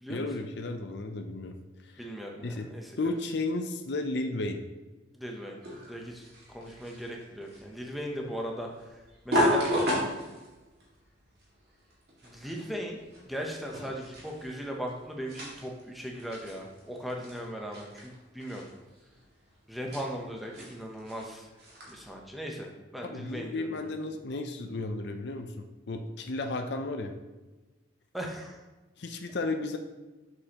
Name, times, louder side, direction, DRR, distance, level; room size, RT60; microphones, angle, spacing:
voice 1, 0.1-1.6 1.8-2.1 2.4-2.7 3.0-4.6 23.0-27.1 29.0-29.8, left 2 dB, 60° left, 4 dB, 0.5 m, -33 dB
voice 2, 2.0-2.9 5.1-5.6 5.9-6.3 6.5-8.7 9.2-9.7 12.2-13.0 13.3-18.7 19.7-21.5 21.8-23.9 28.1-28.6, equal, ahead, 0 dB, 0.8 m, -38 dB
sound 1, 5.6-22.1, equal, 55° right, 2.1 m, -35 dB
7.6 x 6.3 x 2.9 m, 1.2 s
head